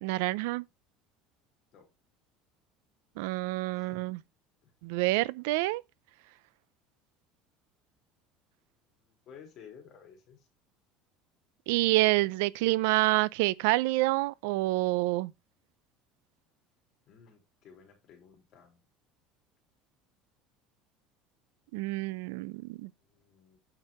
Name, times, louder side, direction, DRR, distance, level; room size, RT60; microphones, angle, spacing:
voice 1, 0.0-0.6 3.2-4.2 4.8-5.8 11.7-15.3 21.7-22.9, right 20 dB, 85° right, 0.4 m, -27 dB
voice 2, 9.0-10.5 17.1-18.8 23.0-23.6, left 7 dB, 40° left, 3.2 m, -54 dB
8.7 x 4.6 x 4.3 m
cardioid pair, 170°, 0 cm